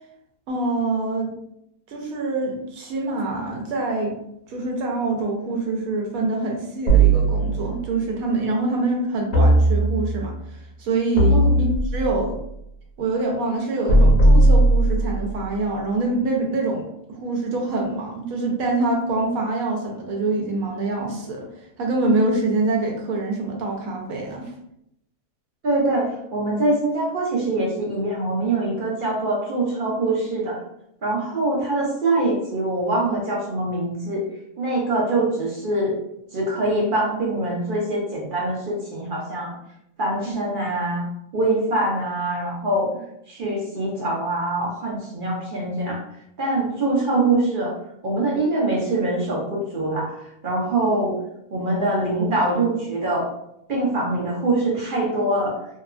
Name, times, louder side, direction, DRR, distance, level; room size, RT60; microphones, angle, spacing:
voice 1, 0.5-1.3 1.9-4.1 4.5-12.4 13.0-16.8 17.1-21.4 21.8-24.5 40.2-40.3, right 2 dB, 90° right, 0 dB, 1.1 m, -25 dB
sound 1, 6.9-7.9 9.3-10.3 11.2-12.2 13.9-15.3, right 2 dB, 50° left, 1.0 m, -17 dB
voice 2, 25.6-30.6 31.0-34.3 34.6-36.0 36.3-39.6 40.0-41.0 41.3-42.9 43.3-46.0 46.4-47.7 48.0-50.1 50.4-51.2 51.5-53.3 53.7-55.6, right 2 dB, 55° right, -3 dB, 0.6 m, -23 dB
2.8 x 2.2 x 2.4 m, 0.78 s
omnidirectional pair, 1.4 m